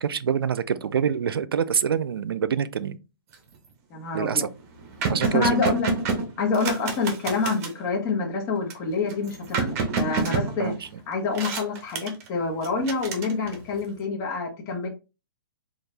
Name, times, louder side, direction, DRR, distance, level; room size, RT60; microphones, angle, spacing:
voice 1, 0.0-3.0 4.1-4.5 5.1-5.7 10.6-10.8, right 7 dB, 85° right, 0.5 m, -25 dB
sound 1, 3.3-3.7 4.1-4.2 4.4-7.8 8.7-11.0 11.3-12.3 12.6-13.8, right 4 dB, 40° right, 1.1 m, -29 dB
voice 2, 3.9-4.5 5.3-5.9 6.4-10.7 11.1-14.9, left 4 dB, 25° left, 1.1 m, -27 dB
4.2 x 2.5 x 3.3 m
hypercardioid pair, 150°, 12 cm